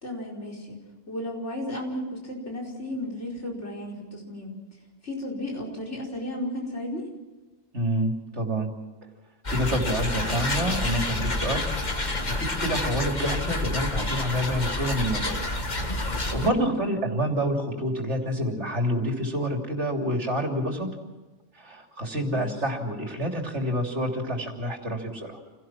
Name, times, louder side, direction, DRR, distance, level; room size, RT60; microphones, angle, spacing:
voice 1, 0.0-0.8 1.1-4.6 5.0-7.0 16.3-16.7 22.4-22.6, left 1 dB, 80° left, 0 dB, 5.2 m, -34 dB
voice 2, 7.7-8.7 9.5-11.7 12.0-15.5 16.3-20.9 21.6-25.4, equal, 80° right, 2 dB, 3.5 m, -28 dB
sound 1, 9.4-16.5, left 2 dB, 40° left, 1.8 m, -28 dB
29.0 x 17.5 x 6.0 m, 1.2 s
omnidirectional pair, 1.2 m